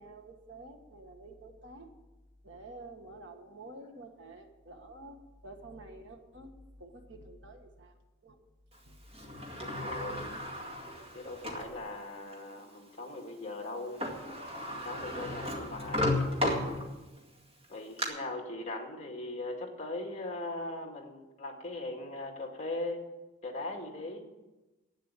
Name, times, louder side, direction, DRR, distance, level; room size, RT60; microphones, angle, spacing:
voice 1, 0.0-1.9 2.4-6.5 6.8-7.9 8.2-8.4 8.9-9.0, right 2 dB, 65° right, 5 dB, 1.5 m, -49 dB
Sliding door, 9.1-11.7 12.3-12.4 13.7-13.8 14.0-17.2 17.6-18.1, left 1 dB, 30° right, 2.1 m, -34 dB
voice 2, 9.6-10.3 11.1-14.1 14.7-16.3 17.7-23.0 23.4-24.2, left 2 dB, 35° left, 2 dB, 2.0 m, -39 dB
12.0 x 9.0 x 8.4 m, 1.1 s
head